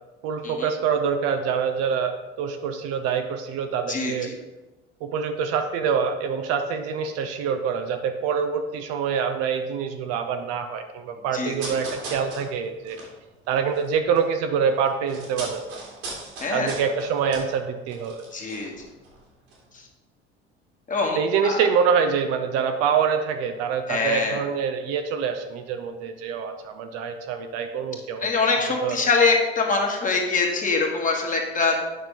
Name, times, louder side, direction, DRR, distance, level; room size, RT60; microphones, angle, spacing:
voice 1, 0.2-4.3 5.0-13.0 13.5-15.8 16.5-18.2 21.1-28.3 28.8-29.0, right 6 dB, 50° right, 6 dB, 0.8 m, -25 dB
voice 2, 3.9-4.4 11.3-11.8 16.4-16.7 18.3-18.7 19.7-19.9 20.9-21.6 23.9-24.4 28.2-31.8, left 4 dB, 25° left, 1 dB, 1.6 m, -24 dB
sound 1, 11.5-14.3 14.6-19.2 19.5-19.6, right 3 dB, 70° right, 2.5 m, -39 dB
9.2 x 5.9 x 3.5 m, 1.1 s
figure-of-eight pair, 65°, 32 cm